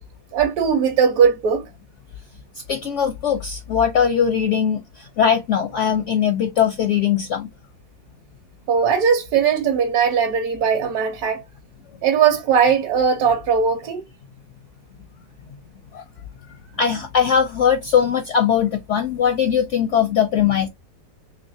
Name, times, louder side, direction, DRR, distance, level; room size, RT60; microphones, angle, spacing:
voice 1, 0.3-1.7 8.7-11.4 12.0-14.0, right 6 dB, 65° right, 1.1 m, -19 dB
voice 2, 2.7-7.5 15.9-16.0 16.8-20.7, left 8 dB, 65° left, 0.7 m, -20 dB
3.3 x 3.1 x 2.7 m
omnidirectional pair, 1.9 m